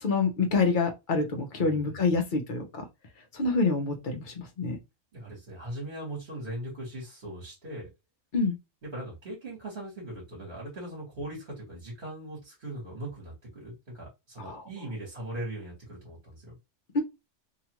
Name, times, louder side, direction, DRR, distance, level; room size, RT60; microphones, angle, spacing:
voice 1, 0.0-2.8 3.3-4.8 8.3-8.6 14.4-14.6 16.9-17.0, left 4 dB, 45° left, 0.8 m, -27 dB
voice 2, 1.6-2.2 5.1-7.9 8.8-16.6, right 1 dB, 45° right, 1.4 m, -40 dB
2.9 x 2.4 x 2.9 m
omnidirectional pair, 1.3 m